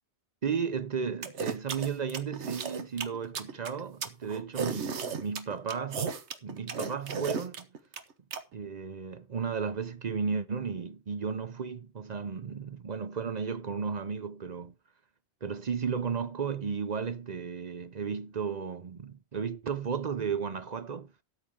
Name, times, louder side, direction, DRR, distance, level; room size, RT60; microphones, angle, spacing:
voice 1, 0.4-6.1 6.4-7.7 8.5-14.7 15.4-21.1, right 6 dB, 45° right, 0.7 m, -34 dB
sound 1, 1.2-8.4, right 6 dB, 80° right, 1.3 m, -34 dB
13.0 x 8.6 x 3.7 m
omnidirectional pair, 1.1 m